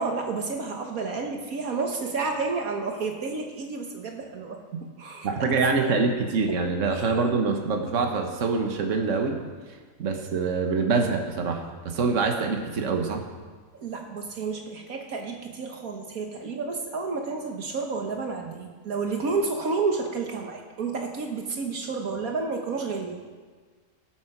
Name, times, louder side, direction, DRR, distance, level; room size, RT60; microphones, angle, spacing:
voice 1, 0.0-5.5 5.8-5.9 6.5-6.6 6.9-7.1 13.8-23.2, right 4 dB, 70° right, 2 dB, 1.7 m, -31 dB
voice 2, 5.2-9.4 10.0-13.3, right 4 dB, 55° right, 3 dB, 1.6 m, -25 dB
18.5 x 7.8 x 6.0 m, 1.5 s
omnidirectional pair, 1.6 m